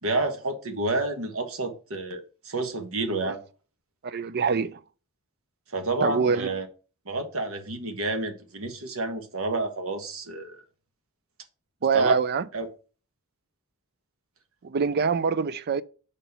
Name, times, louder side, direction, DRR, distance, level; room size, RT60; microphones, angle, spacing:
voice 1, 0.0-3.4 5.7-6.7 7.0-10.6 11.9-12.1 12.5-12.7, right 2 dB, 65° right, 1.3 m, -29 dB
voice 2, 4.0-4.8 6.0-6.5 11.8-12.4 14.6-15.8, right 5 dB, 45° right, 0.4 m, -24 dB
5.1 x 4.2 x 5.5 m
head